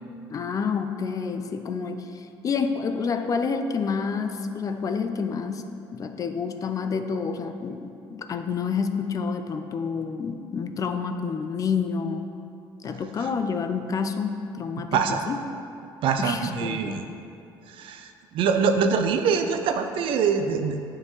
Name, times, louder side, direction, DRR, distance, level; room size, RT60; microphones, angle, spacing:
voice 1, 0.3-12.3 12.8-15.4 16.2-17.0, left 5 dB, 40° left, 7 dB, 0.4 m, -29 dB
voice 2, 14.9-15.3 16.0-17.0 17.8-20.8, right 6 dB, 70° right, 6 dB, 0.5 m, -24 dB
8.8 x 3.7 x 3.2 m, 2.6 s
cardioid pair, 100°, 9 cm